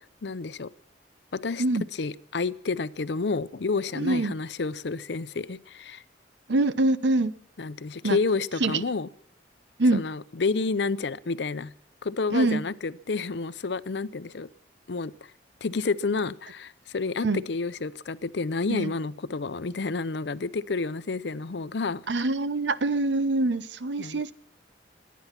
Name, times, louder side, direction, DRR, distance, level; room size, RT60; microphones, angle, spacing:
voice 1, 0.2-0.7 1.3-1.6 1.9-6.0 7.6-9.1 9.9-11.7 12.0-14.5 14.9-15.3 15.6-22.0 24.0-24.2, left 4 dB, 70° left, 16 dB, 0.6 m, -30 dB
voice 2, 4.0-4.4 6.5-7.3 8.0-8.2 8.6-8.8 9.8-10.0 12.3-12.6 17.2-17.4 18.7-18.9 22.1-24.3, right 2 dB, 75° right, 15 dB, 0.8 m, -24 dB
22.0 x 9.4 x 5.8 m, 0.65 s
head